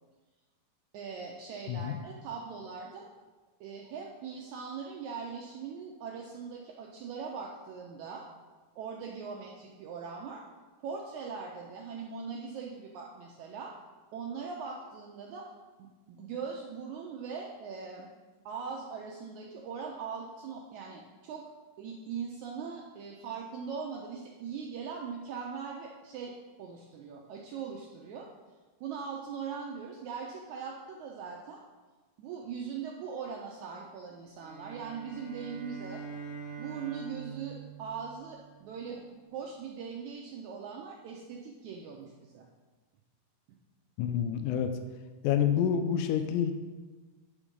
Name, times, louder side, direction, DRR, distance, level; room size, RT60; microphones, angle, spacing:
voice 1, 0.9-3.1 3.6-8.3 8.7-10.4 10.8-13.7 14.1-15.5 16.1-18.1 18.4-21.4 21.8-26.3 26.6-28.3 28.8-31.6 32.2-36.0 36.6-42.5, right 6 dB, 85° right, 0 dB, 1.7 m, -40 dB
voice 2, 1.7-2.0 44.0-44.7 45.2-46.5, left 8 dB, 85° left, 7 dB, 1.8 m, -28 dB
sound 1, 34.4-38.8, right 5 dB, 65° left, 3.1 m, -44 dB
9.5 x 3.6 x 5.3 m, 1.3 s
omnidirectional pair, 4.1 m